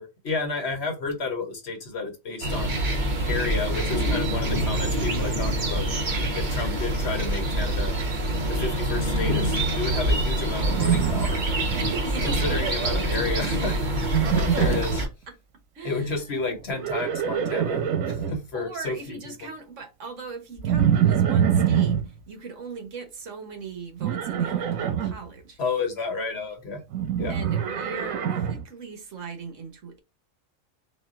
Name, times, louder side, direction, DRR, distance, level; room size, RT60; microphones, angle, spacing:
voice 1, 0.0-2.8 3.3-5.9 6.3-7.9 8.5-11.4 12.2-13.8 14.3-15.0 15.8-19.5 25.6-26.8 27.2-27.4, left 3 dB, 55° left, 1.1 m, -31 dB
sound 1, 2.4-15.1, right 1 dB, 40° right, 0.9 m, -26 dB
Livestock farm animals working animals, 10.7-11.9 12.2-12.7 14.0-15.0 16.6-18.3 20.6-22.0 24.0-25.1 26.9-28.6, right 9 dB, 85° right, 1.2 m, -24 dB
voice 2, 11.7-13.1 14.1-14.3 15.7-16.6 18.5-25.6 27.3-30.0, right 4 dB, 70° right, 1.3 m, -38 dB
4.2 x 2.4 x 3.5 m
omnidirectional pair, 1.4 m